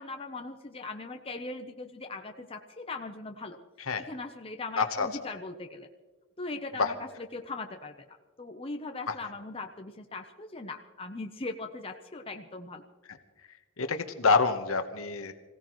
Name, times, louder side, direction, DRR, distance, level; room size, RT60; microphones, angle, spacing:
voice 1, 0.0-3.6 4.0-5.9 6.4-12.8, left 3 dB, 25° left, 4 dB, 0.7 m, -40 dB
voice 2, 4.8-5.1 6.7-6.9 9.1-9.2 13.8-15.3, left 4 dB, 70° left, 7 dB, 1.1 m, -27 dB
26.0 x 16.0 x 3.1 m, 1.3 s
head